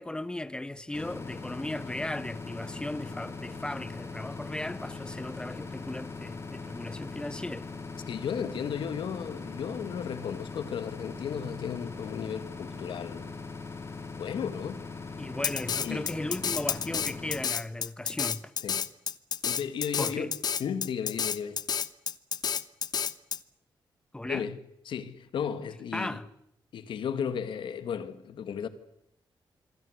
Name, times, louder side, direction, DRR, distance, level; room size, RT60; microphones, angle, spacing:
voice 1, 0.0-7.7 15.2-18.5 20.0-20.3 24.1-24.4 25.9-26.3, left 1 dB, 10° left, 1.2 m, -36 dB
sound 1, 0.9-17.4, left 4 dB, 30° left, 4.4 m, -40 dB
voice 2, 8.1-13.3 14.2-14.8 15.8-16.1 18.6-18.8 19.4-20.3 20.6-21.6 24.2-24.6 24.9-26.2 26.7-28.7, left 7 dB, 85° left, 2.3 m, -34 dB
Drum kit, 15.4-23.4, left 7 dB, 55° left, 1.1 m, -30 dB
27.0 x 23.5 x 8.3 m
wide cardioid pair, 140°, 8 cm